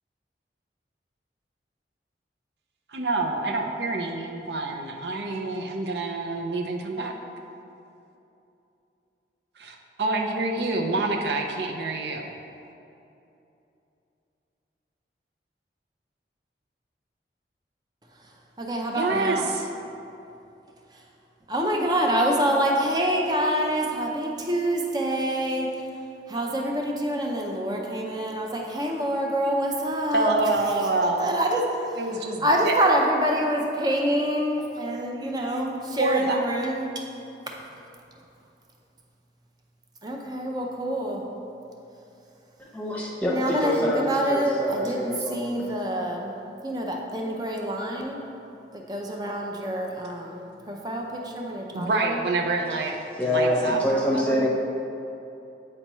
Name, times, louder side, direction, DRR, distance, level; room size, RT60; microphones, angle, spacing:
voice 1, 2.9-7.1 9.6-12.3 19.0-19.6 30.1-31.4 32.0-32.8 36.0-36.5 51.7-54.5, right 2 dB, 70° right, 3 dB, 0.5 m, -27 dB
voice 2, 18.6-19.5 21.5-25.7 26.3-30.3 31.0-37.0 37.5-37.6 40.0-41.2 43.3-46.3 46.6-48.2 48.7-52.2, right 1 dB, 25° right, 0 dB, 0.5 m, -26 dB
voice 3, 42.6-45.8 53.2-54.5, left 1 dB, 10° left, -4 dB, 0.8 m, -26 dB
8.6 x 4.4 x 3.0 m, 2.8 s
head